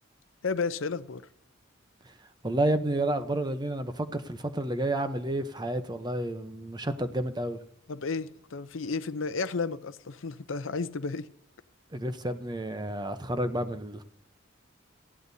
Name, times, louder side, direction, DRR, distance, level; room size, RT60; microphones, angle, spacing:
voice 1, 0.4-1.2 7.9-11.3, left 4 dB, 75° left, 0.6 m, -32 dB
voice 2, 2.4-7.6 11.9-14.0, right 1 dB, 20° right, 0.8 m, -30 dB
18.5 x 14.5 x 2.7 m
head